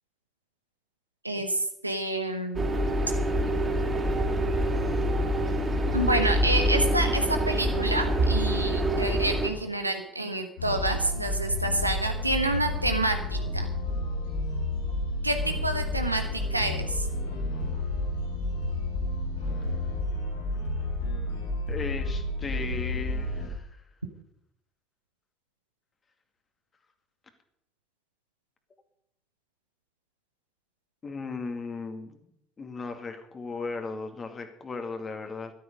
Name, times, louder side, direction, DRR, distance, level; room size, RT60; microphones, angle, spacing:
voice 1, 1.2-2.7 5.9-13.7 15.2-17.1, right 1 dB, 85° right, 6 dB, 1.2 m, -28 dB
sound 1, 2.5-9.5, equal, 25° right, 3.4 m, -25 dB
sound 2, 10.6-23.5, left 1 dB, 75° left, 6.9 m, -31 dB
voice 2, 21.7-23.7 31.0-32.3 32.6-35.5, left 4 dB, 30° left, 5 dB, 2.3 m, -36 dB
13.0 x 12.5 x 5.4 m, 0.74 s
figure-of-eight pair, 55°, 0 cm